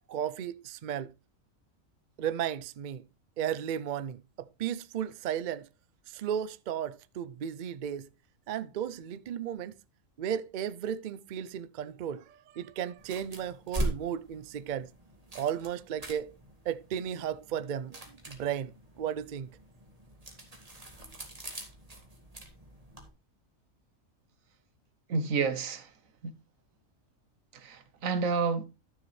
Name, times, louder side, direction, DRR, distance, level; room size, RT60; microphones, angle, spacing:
voice 1, 0.1-1.1 2.2-3.0 3.4-5.7 6.1-8.1 8.5-9.7 10.2-14.9 15.3-16.3 16.7-18.0 18.3-18.7 19.0-19.5, right 9 dB, 65° right, 0.4 m, -34 dB
sound 1, 13.0-23.1, right 1 dB, 25° right, 2.0 m, -41 dB
voice 2, 25.1-25.9 26.2-26.3 27.5-28.6, right 5 dB, 80° right, 1.5 m, -30 dB
12.5 x 6.8 x 3.1 m
omnidirectional pair, 1.4 m